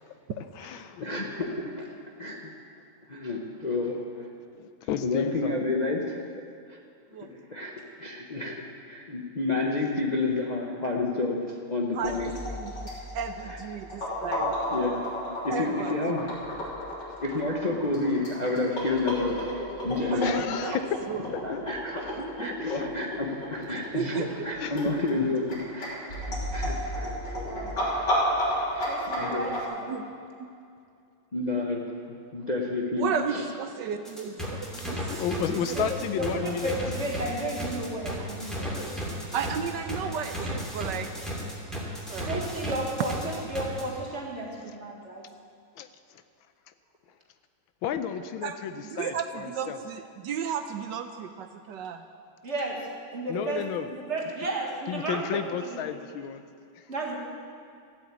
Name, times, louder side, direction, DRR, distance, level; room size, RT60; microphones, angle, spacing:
voice 1, 0.3-1.0 4.6-5.6 20.2-21.0 21.3-21.6 22.6-22.9 24.6-24.9 35.1-36.7 45.8-46.2 47.8-49.8 53.3-53.9 54.9-56.4 56.8-56.9, left 8 dB, 85° left, 10 dB, 1.5 m, -32 dB
voice 2, 1.0-1.9 2.2-2.5 3.1-4.3 5.0-6.2 6.7-6.8 7.3-8.6 8.8-12.3 13.4-13.6 14.7-15.0 15.4-16.3 17.2-19.5 19.8-20.3 20.6-20.8 21.4-25.4 25.7-25.9 26.5-27.1 27.9-28.1 28.7-28.9 29.2-29.5 31.3-31.8 32.3-33.0 33.3-33.4, left 3 dB, 30° left, -1 dB, 0.8 m, -30 dB
voice 3, 11.9-12.7 13.1-14.6 15.5-16.0 20.1-20.8 21.1-21.2 22.2-22.6 23.7-24.3 29.9-30.1 30.4-30.5 33.0-35.2 35.8-35.9 39.3-41.1 42.1-42.4 48.4-48.6 48.9-52.0, right 7 dB, 70° right, 8 dB, 1.2 m, -33 dB
sound 1, 12.0-29.6, equal, 60° left, 4.1 m, -32 dB
voice 4, 28.8-30.0 35.8-35.9 36.2-38.9 39.2-39.4 42.2-45.2 52.4-53.6 53.9-55.8 56.9-57.2, right 2 dB, 35° right, -1 dB, 2.0 m, -33 dB
sound 2, 34.1-43.8, equal, ahead, 2.4 m, -34 dB
14.0 x 8.2 x 8.4 m, 2.4 s
omnidirectional pair, 2.2 m